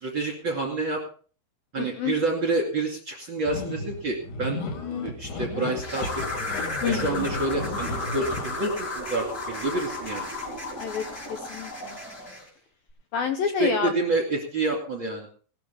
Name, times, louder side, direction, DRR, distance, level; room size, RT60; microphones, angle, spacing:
voice 1, 0.0-1.0 1.7-4.6 5.0-6.2 6.9-10.3 13.6-15.3, right 2 dB, 35° right, 3 dB, 2.2 m, -28 dB
voice 2, 1.8-2.2 6.8-7.3 10.8-12.0 13.1-13.9, left 7 dB, 70° left, 5 dB, 2.3 m, -29 dB
sound 1, 3.5-8.6, left 3 dB, 50° left, 3.2 m, -34 dB
sound 2, 5.8-12.5, left 2 dB, 20° left, 4.4 m, -33 dB
18.5 x 13.0 x 3.5 m, 0.42 s
omnidirectional pair, 5.4 m